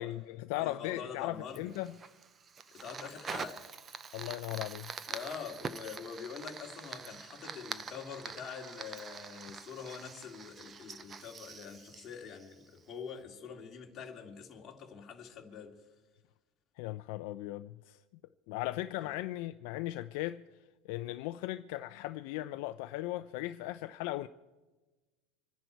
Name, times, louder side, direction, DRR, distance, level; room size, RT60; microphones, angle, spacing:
voice 1, 0.0-1.9 4.1-4.9 16.8-18.0 18.5-20.4 20.8-24.3, left 16 dB, 55° left, 0.5 m, -37 dB
voice 2, 0.5-1.7 2.7-3.7 5.1-15.7 19.0-19.1, left 6 dB, 20° left, 2.4 m, -45 dB
Fire, 1.6-12.9, right 5 dB, 20° right, 0.5 m, -45 dB
26.5 x 10.5 x 4.6 m
supercardioid pair, 170°, 0 cm